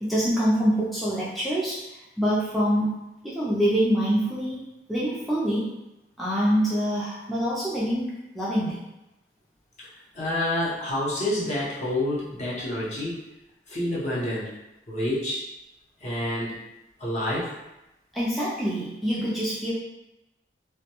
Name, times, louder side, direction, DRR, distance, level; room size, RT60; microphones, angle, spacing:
voice 1, 0.0-2.9 3.2-4.6 4.9-5.7 6.2-8.8 18.1-19.7, equal, ahead, -9 dB, 0.4 m, -25 dB
voice 2, 9.8-13.2 13.7-14.5 14.9-15.4 16.0-16.6 17.0-17.5, left 1 dB, 40° left, -7 dB, 0.7 m, -28 dB
2.2 x 2.1 x 2.8 m, 0.93 s
head